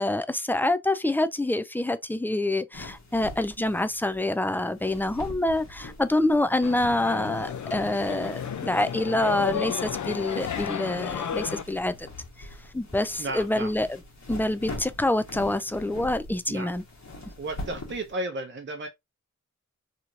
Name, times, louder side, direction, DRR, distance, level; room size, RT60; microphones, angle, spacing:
voice 1, 0.0-12.1 12.4-12.5 12.7-13.9 14.3-16.8, left 1 dB, 5° left, 0.3 m, -26 dB
sound 1, 2.7-18.1, left 1 dB, 65° left, 1.2 m, -44 dB
sound 2, 6.6-11.6, left 8 dB, 80° left, 0.5 m, -32 dB
voice 2, 13.2-13.7 16.5-16.7 17.4-18.9, right 2 dB, 40° right, 0.6 m, -33 dB
3.0 x 2.8 x 2.4 m
wide cardioid pair, 80°, 30 cm